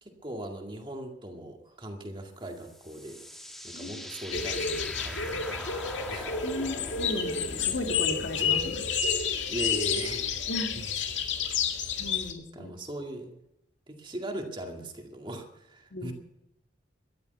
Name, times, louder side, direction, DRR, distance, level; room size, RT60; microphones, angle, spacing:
voice 1, 0.0-3.2 3.6-6.3 8.3-8.6 9.4-10.2 10.7-11.0 12.5-13.4 13.9-16.1, right 1 dB, 25° right, 3 dB, 2.1 m, -39 dB
sound 1, 2.4-9.6, equal, ahead, 1.8 m, -44 dB
voice 2, 3.7-4.0 6.4-7.4 7.7-8.8 10.5-10.8 12.0-12.7 15.9-16.1, left 1 dB, 70° left, 4 dB, 2.0 m, -35 dB
sound 2, 4.3-12.3, left 6 dB, 85° left, 2.0 m, -30 dB
13.5 x 12.0 x 8.1 m, 0.84 s
head